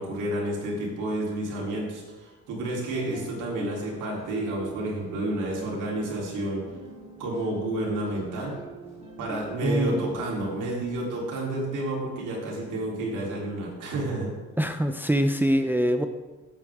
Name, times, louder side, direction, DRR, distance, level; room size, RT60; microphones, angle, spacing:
voice 1, 0.0-6.6 7.2-8.6 9.2-14.3, right 1 dB, 85° right, -3 dB, 3.7 m, -30 dB
sound 1, 2.9-11.0, right 3 dB, 20° right, 3.4 m, -43 dB
voice 2, 9.6-10.1 14.6-16.1, equal, 5° right, 7 dB, 0.7 m, -24 dB
16.5 x 8.1 x 3.7 m, 1.3 s
cardioid pair, 90°, 30 cm